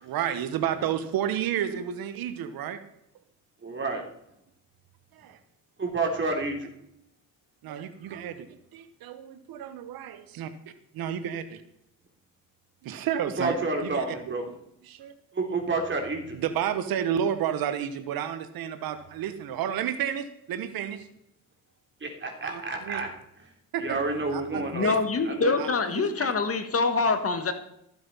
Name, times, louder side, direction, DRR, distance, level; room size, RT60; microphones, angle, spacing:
voice 1, 0.0-2.8 5.1-5.4 7.6-10.5 10.9-11.6 12.8-13.6 13.8-14.2 14.8-15.1 16.3-21.1 22.4-23.0 23.7-24.0 24.3-25.0 25.6-26.3, right 9 dB, 80° right, 10 dB, 1.2 m, -31 dB
voice 2, 3.6-4.0 5.8-6.7 13.4-14.4 15.3-16.4 22.0-23.1 23.8-24.9 25.2-25.6, right 3 dB, 35° right, 3 dB, 3.6 m, -29 dB
voice 3, 24.7-27.5, left 4 dB, 40° left, 9 dB, 1.7 m, -25 dB
15.0 x 7.8 x 5.6 m, 0.78 s
cardioid pair, 95°, 35 cm